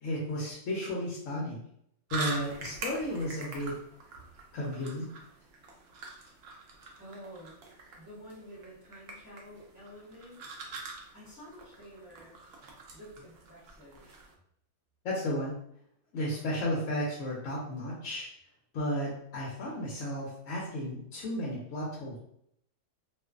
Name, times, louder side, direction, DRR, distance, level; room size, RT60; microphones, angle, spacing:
voice 1, 0.0-1.6 2.1-3.7 4.5-5.1 15.0-15.5 16.1-18.3 18.7-22.2, equal, 65° left, -4 dB, 0.9 m, -33 dB
sound 1, 2.1-14.3, right 3 dB, 70° right, 0.5 m, -44 dB
voice 2, 7.0-7.6 8.0-10.4 11.1-12.4 12.9-14.1, equal, 15° right, -9 dB, 0.8 m, -50 dB
2.5 x 2.4 x 2.3 m, 0.71 s
omnidirectional pair, 1.6 m